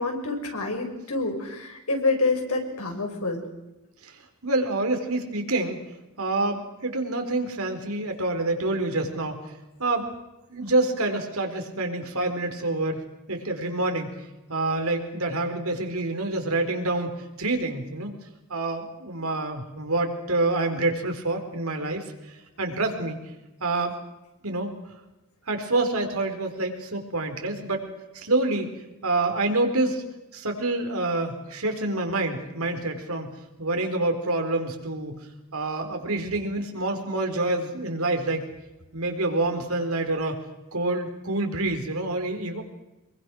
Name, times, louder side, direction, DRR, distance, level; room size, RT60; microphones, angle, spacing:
voice 1, 0.0-3.4, left 3 dB, 80° left, 3 dB, 5.9 m, -27 dB
voice 2, 4.4-5.8 6.2-9.4 9.8-10.1 10.5-13.0 13.3-14.1 14.5-18.1 18.5-23.2 23.6-23.9 24.4-24.7 25.5-27.9 28.1-28.7 29.0-30.0 30.3-33.3 33.6-35.2 35.5-38.4 38.9-40.4 40.7-42.6, right 2 dB, 70° right, 5 dB, 4.3 m, -27 dB
26.0 x 22.5 x 6.3 m, 1.0 s
head